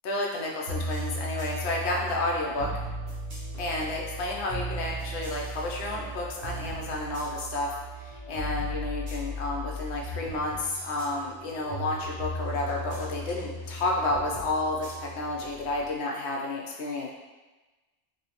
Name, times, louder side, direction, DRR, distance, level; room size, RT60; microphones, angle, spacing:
voice 1, 0.0-2.7 3.6-7.7 8.0-17.1, left 2 dB, 70° left, -2 dB, 0.8 m, -31 dB
sound 1, 0.7-15.9, equal, 60° right, 0.8 m, -37 dB
3.1 x 2.0 x 2.8 m, 1.2 s
omnidirectional pair, 1.2 m